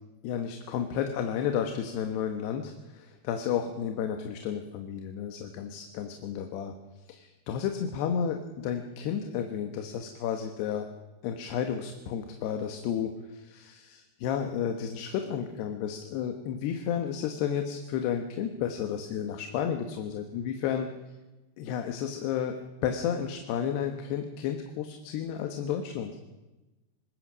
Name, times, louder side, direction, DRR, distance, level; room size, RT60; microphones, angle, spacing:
voice 1, 0.2-6.7 7.1-10.9 11.2-20.9 21.6-26.2, left 8 dB, 75° left, 5 dB, 3.2 m, -32 dB
25.5 x 20.5 x 6.2 m, 1.1 s
omnidirectional pair, 5.0 m